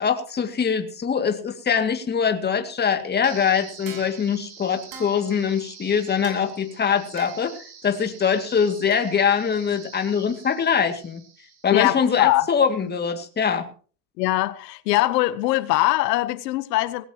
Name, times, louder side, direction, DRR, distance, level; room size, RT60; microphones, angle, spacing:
voice 1, 0.0-7.5 7.8-11.2 11.6-13.7, left 7 dB, 20° left, 2.2 m, -23 dB
sound 1, 3.2-12.3, right 6 dB, 50° right, 8.0 m, -44 dB
voice 2, 11.7-12.5 14.2-17.0, left 17 dB, 85° left, 1.1 m, -22 dB
19.5 x 17.0 x 2.9 m
supercardioid pair, 130°, 48 cm